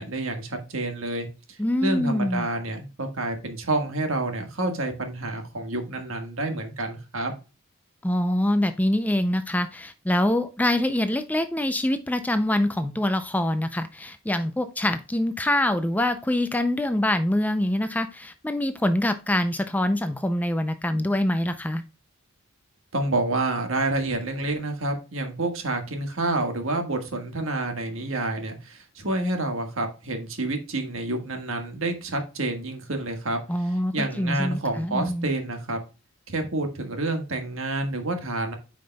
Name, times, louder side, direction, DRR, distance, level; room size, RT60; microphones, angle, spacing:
voice 1, 0.0-7.3 22.9-33.4 33.7-35.8 36.3-38.5, right 2 dB, 65° right, 5 dB, 1.5 m, -28 dB
voice 2, 1.6-2.5 8.0-21.8 33.5-35.3, left 1 dB, 5° left, 10 dB, 0.4 m, -25 dB
9.2 x 5.1 x 2.2 m, 0.31 s
head